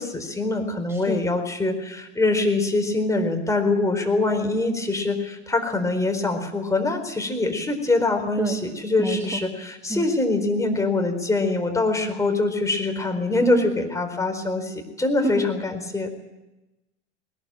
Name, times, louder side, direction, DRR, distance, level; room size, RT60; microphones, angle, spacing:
voice 1, 0.0-16.1, left 2 dB, 10° left, 4 dB, 4.2 m, -24 dB
voice 2, 0.9-1.2 8.4-8.6 9.0-9.4 9.9-10.1 13.4-13.7 15.2-15.5, right 2 dB, 5° right, 5 dB, 1.9 m, -27 dB
20.0 x 19.5 x 9.0 m, 0.98 s
figure-of-eight pair, 85°, 35 cm